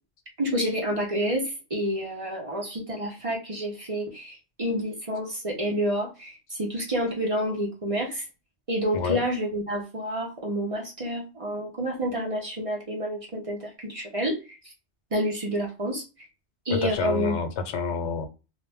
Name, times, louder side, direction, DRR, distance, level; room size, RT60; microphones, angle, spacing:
voice 1, 0.4-8.2 8.7-14.6 15.1-16.0 16.7-17.4, equal, 35° right, 0.7 m, -29 dB
voice 2, 16.7-18.3, left 5 dB, 85° left, 0.9 m, -28 dB
2.5 x 2.1 x 3.3 m
omnidirectional pair, 1.1 m